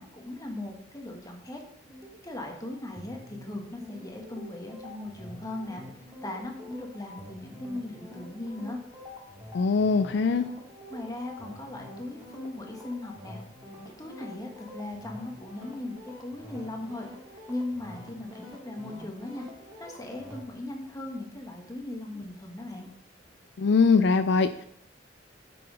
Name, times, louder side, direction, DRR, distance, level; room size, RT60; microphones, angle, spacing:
voice 1, 0.0-1.6 2.2-8.8 10.9-13.4 14.0-19.5 19.8-22.9, left 2 dB, 20° left, 2 dB, 1.5 m, -38 dB
sound 1, 1.8-20.4, left 1 dB, 20° right, 1.9 m, -46 dB
voice 2, 9.5-10.5 23.6-24.7, left 4 dB, 65° left, 11 dB, 0.4 m, -22 dB
7.7 x 6.2 x 5.1 m, 0.68 s
head